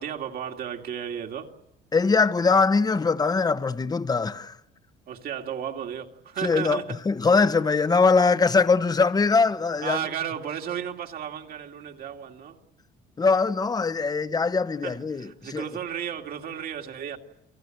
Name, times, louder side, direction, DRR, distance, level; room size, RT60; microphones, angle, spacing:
voice 1, 0.0-1.5 5.1-7.0 9.8-12.6 14.8-17.2, right 9 dB, 60° right, 2.5 m, -34 dB
voice 2, 1.9-4.6 6.4-10.0 13.2-15.7, left 4 dB, 25° left, 1.2 m, -22 dB
30.0 x 22.5 x 7.9 m
cardioid pair, 110°, 17 cm